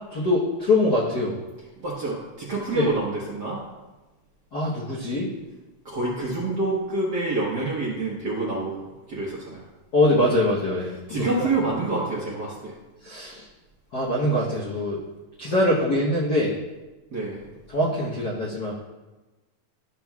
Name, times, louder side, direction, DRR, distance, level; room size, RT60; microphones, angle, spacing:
voice 1, 0.1-1.4 2.7-2.9 4.5-5.3 9.9-10.9 13.0-13.5 13.9-15.0 15.4-16.5 17.7-18.8, left 1 dB, 60° left, -5 dB, 1.0 m, -23 dB
voice 2, 1.8-3.6 5.8-9.6 11.1-12.7 17.1-17.5, right 2 dB, 50° right, -6 dB, 1.2 m, -27 dB
13.0 x 6.1 x 2.3 m, 1.1 s
omnidirectional pair, 3.4 m